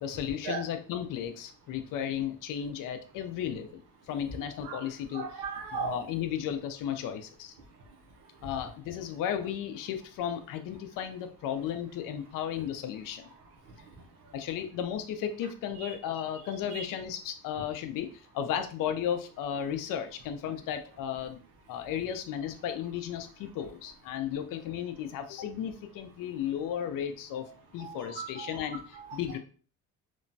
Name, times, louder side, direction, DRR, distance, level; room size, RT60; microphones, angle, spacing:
voice 1, 0.0-5.3 5.7-7.5 8.4-13.3 14.3-21.4 21.7-27.4 27.7-28.8 29.1-29.4, left 9 dB, 70° left, 7 dB, 0.5 m, -34 dB
voice 2, 5.1-6.0 15.8-15.9 16.7-16.9 27.8-29.2, right 5 dB, 85° right, 1 dB, 0.8 m, -37 dB
3.0 x 2.1 x 2.6 m, 0.40 s
cardioid pair, 105°, 34 cm